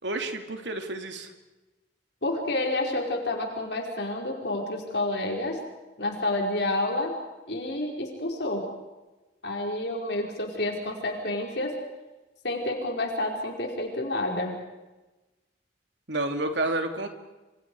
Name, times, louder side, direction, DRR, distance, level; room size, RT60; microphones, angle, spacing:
voice 1, 0.0-1.3 16.1-17.1, right 2 dB, 75° right, 5 dB, 3.1 m, -30 dB
voice 2, 2.2-5.6 6.0-7.1 7.5-8.7 9.4-11.7 12.4-14.5, left 2 dB, 65° left, 1 dB, 5.0 m, -29 dB
28.0 x 27.0 x 4.9 m, 1.1 s
head